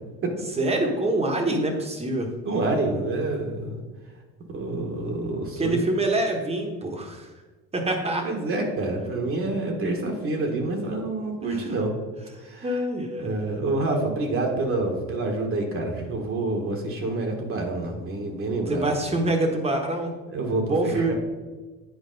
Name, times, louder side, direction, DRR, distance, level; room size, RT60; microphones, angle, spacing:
voice 1, 0.6-2.3 5.6-7.3 7.7-8.2 11.5-11.7 12.6-13.3 18.7-20.1 20.7-21.1, right 1 dB, 20° right, 3 dB, 1.2 m, -25 dB
voice 2, 2.4-3.8 4.5-5.8 8.2-11.9 12.4-12.8 13.2-18.8 20.3-21.1, right 2 dB, 40° right, 2 dB, 1.4 m, -27 dB
9.1 x 4.6 x 3.9 m, 1.3 s
cardioid pair, 120°, 33 cm